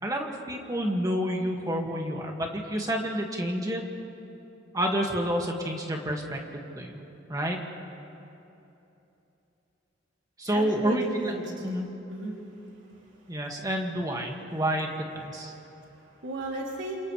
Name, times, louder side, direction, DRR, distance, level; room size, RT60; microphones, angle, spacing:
voice 1, 0.0-3.8 4.7-7.0 7.3-7.6 10.4-11.3 11.6-11.9 13.3-15.5, equal, 20° right, 1 dB, 2.1 m, -29 dB
voice 2, 10.5-11.6 12.1-12.4 15.3-17.1, right 1 dB, 75° right, -3 dB, 3.3 m, -36 dB
28.5 x 27.5 x 3.4 m, 2.9 s
head